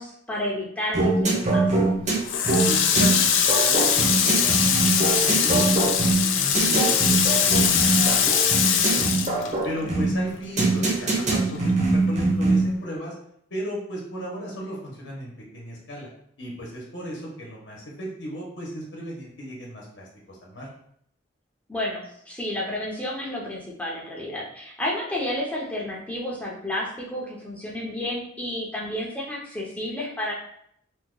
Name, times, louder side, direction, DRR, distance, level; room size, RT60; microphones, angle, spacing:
voice 1, 0.0-1.6 9.8-10.1 21.7-30.3, left 1 dB, 10° left, -4 dB, 0.6 m, -31 dB
sound 1, 0.9-12.8, right 3 dB, 35° right, 0.7 m, -23 dB
Water tap faucet, 2.3-10.1 10.4-11.7, left 7 dB, 85° left, 0.4 m, -22 dB
voice 2, 2.6-9.2 9.6-13.1 13.5-16.1 16.4-20.7, equal, 65° left, -3 dB, 0.9 m, -36 dB
2.8 x 2.2 x 3.7 m, 0.68 s
head